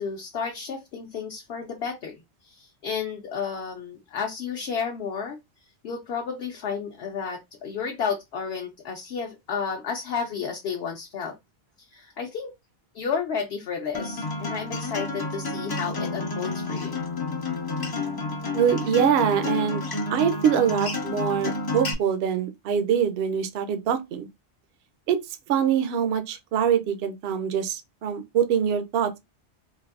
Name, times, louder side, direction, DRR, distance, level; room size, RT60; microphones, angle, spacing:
voice 1, 0.0-5.4 5.8-11.4 11.9-12.5 12.9-17.0, left 6 dB, 65° left, 0.9 m, -32 dB
Acoustic guitar, 13.9-21.9, left 3 dB, 35° left, 0.4 m, -30 dB
voice 2, 18.5-19.8 20.1-24.3 25.1-25.2 25.5-29.2, right 8 dB, 65° right, 0.8 m, -24 dB
3.2 x 2.6 x 2.4 m
omnidirectional pair, 1.2 m